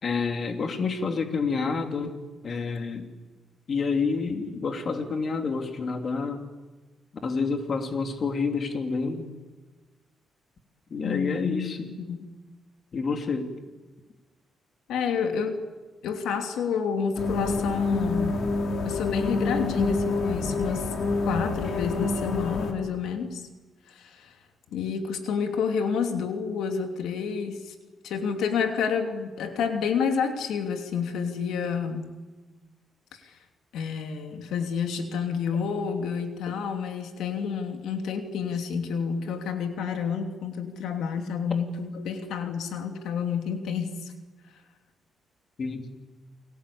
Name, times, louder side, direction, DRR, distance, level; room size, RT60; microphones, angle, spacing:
voice 1, 0.0-3.1 3.7-6.4 7.2-9.3 10.9-11.9 12.9-13.5 45.6-45.8, left 4 dB, 45° left, 5 dB, 3.0 m, -28 dB
voice 2, 11.0-12.3 14.9-15.6 16.0-18.4 18.8-20.9 21.3-23.4 23.9-24.4 24.7-27.7 28.0-32.1 33.2-33.4 33.7-44.1, left 6 dB, 90° left, 5 dB, 2.9 m, -29 dB
sound 1, 17.2-22.7, left 3 dB, 60° left, 4.0 m, -27 dB
29.5 x 21.5 x 8.6 m, 1.2 s
cardioid pair, 120°, 0 cm